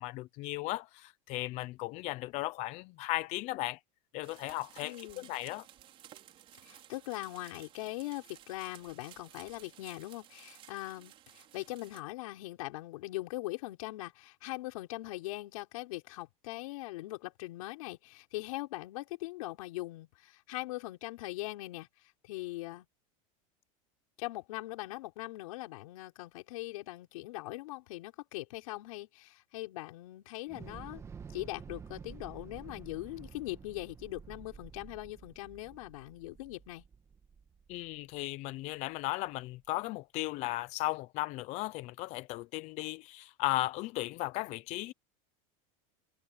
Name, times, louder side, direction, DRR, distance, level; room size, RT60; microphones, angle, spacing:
voice 1, 0.0-3.8 4.1-5.6 37.7-44.9, left 18 dB, 40° left, 0.6 m, -36 dB
sound 1, 4.2-12.0, right 12 dB, 30° right, 5.4 m, -56 dB
voice 2, 4.8-5.4 6.6-22.9 24.2-31.0 31.3-36.8, left 19 dB, 80° left, 5.3 m, -41 dB
Thunder / Explosion, 30.5-38.7, right 6 dB, 15° right, 1.6 m, -50 dB
supercardioid pair, 165°, 18 cm